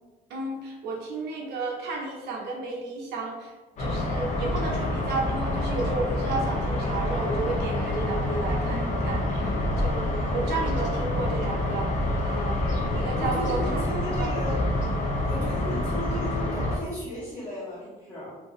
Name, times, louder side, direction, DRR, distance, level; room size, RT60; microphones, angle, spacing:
voice 1, 0.3-3.5 3.8-11.9 12.2-12.6 12.9-13.8 14.2-14.3, right 3 dB, 75° right, 0 dB, 0.7 m, -32 dB
sound 1, 3.8-16.8, left 1 dB, 45° left, 0.6 m, -27 dB
voice 2, 13.2-14.6 15.2-18.3, equal, 25° left, -10 dB, 1.0 m, -35 dB
2.7 x 2.6 x 2.5 m, 1.2 s
cardioid pair, 110°, 17 cm